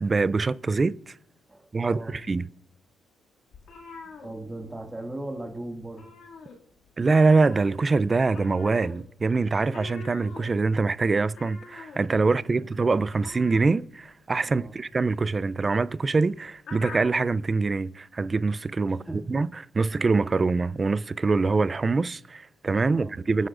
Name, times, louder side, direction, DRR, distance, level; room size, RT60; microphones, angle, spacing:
voice 1, 0.0-1.1 1.7-2.4 7.0-19.0 19.3-23.5, right 3 dB, 30° right, 0.4 m, -24 dB
voice 2, 1.5-2.2 4.2-6.1 12.6-12.7 14.4-14.7 18.9-19.2 22.9-23.1, right 1 dB, 15° right, 2.0 m, -38 dB
sound 1, 3.5-5.0 5.3-5.5 5.8-6.9 7.2-17.3, left 4 dB, 65° left, 2.2 m, -45 dB
25.5 x 9.3 x 2.5 m
cardioid pair, 90°, 0 cm